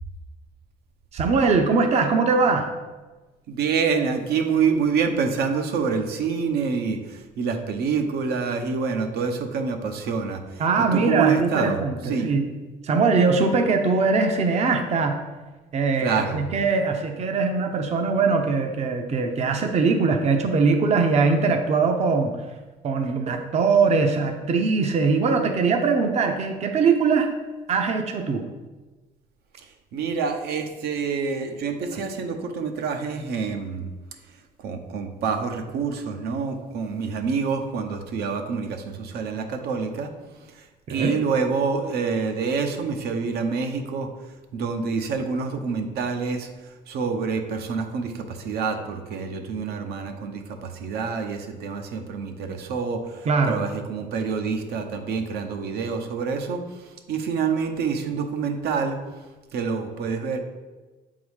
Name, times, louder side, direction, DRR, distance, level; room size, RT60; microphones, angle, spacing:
voice 1, 1.1-2.7 10.6-12.5 12.8-15.2 15.7-22.3 22.8-27.3 27.7-28.5 31.9-32.0 40.9-41.2 53.3-53.6, right 4 dB, 40° right, 5 dB, 0.7 m, -21 dB
voice 2, 3.5-10.6 10.9-11.8 12.0-12.3 16.0-16.4 29.6-33.9 34.6-40.1 40.4-59.0 59.5-60.4, right 5 dB, 70° right, 5 dB, 0.9 m, -27 dB
7.1 x 3.8 x 4.8 m, 1.2 s
cardioid pair, 110°, 17 cm